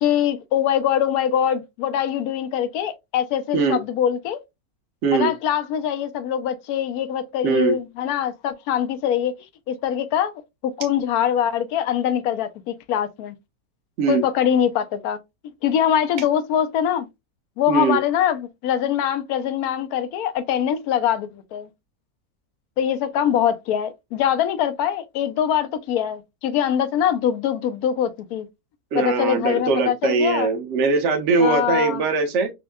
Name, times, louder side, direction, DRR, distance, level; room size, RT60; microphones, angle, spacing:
voice 1, 0.0-4.4 5.1-9.3 9.7-10.3 10.6-13.3 14.1-15.2 15.6-17.1 17.6-21.7 22.8-28.5 29.0-30.5 31.4-32.0, left 9 dB, 80° left, 1.1 m, -23 dB
voice 2, 7.4-7.8 14.0-14.2 17.7-18.0 28.9-32.5, right 4 dB, 55° right, 1.2 m, -21 dB
6.2 x 2.2 x 2.3 m
omnidirectional pair, 1.6 m